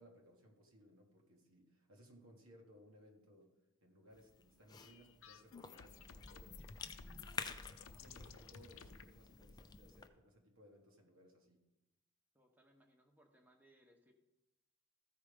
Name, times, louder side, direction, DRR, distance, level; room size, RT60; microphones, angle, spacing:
voice 1, 0.0-3.5 3.8-11.6, equal, 70° right, 1 dB, 1.3 m, -64 dB
Cough / Chewing mastication, 4.1-10.1, left 4 dB, 20° left, 0.4 m, -51 dB
sound 1, 4.7-9.1, left 6 dB, 70° left, 0.6 m, -56 dB
voice 2, 12.3-14.1, right 1 dB, 10° right, 3 dB, 0.9 m, -69 dB
13.5 x 4.8 x 5.0 m, 0.98 s
head